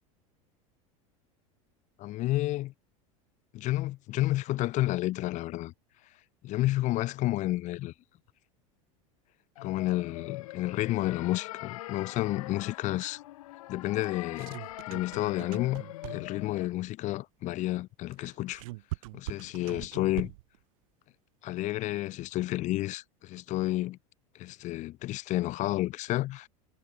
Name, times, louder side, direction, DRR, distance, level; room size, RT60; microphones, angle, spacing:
voice 1, 2.0-2.7 3.5-5.7 6.4-7.9 9.6-13.2 13.7-14.6 14.9-15.8 16.1-18.6 19.1-20.3 21.4-24.0 24.4-26.5, left 16 dB, 45° left, 0.6 m, -30 dB
sound 1, 9.6-16.7, left 16 dB, 85° left, 4.6 m, -43 dB
sound 2, 14.0-16.5 18.1-20.6, right 21 dB, 75° right, 3.2 m, -41 dB
supercardioid pair, 110°, 18 cm